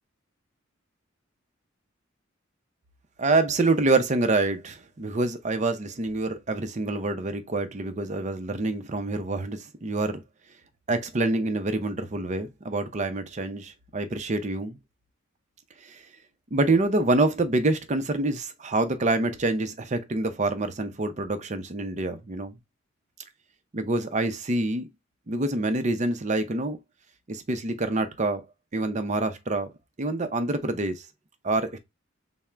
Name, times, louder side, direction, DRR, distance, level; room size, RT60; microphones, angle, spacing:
voice 1, 3.2-10.2 10.9-14.8 15.8-16.0 16.5-22.6 23.7-24.9 25.3-26.8 27.3-28.4 28.7-29.7 30.0-31.0 31.4-31.8, right 2 dB, 35° right, 0.6 m, -26 dB
3.6 x 2.1 x 4.3 m
head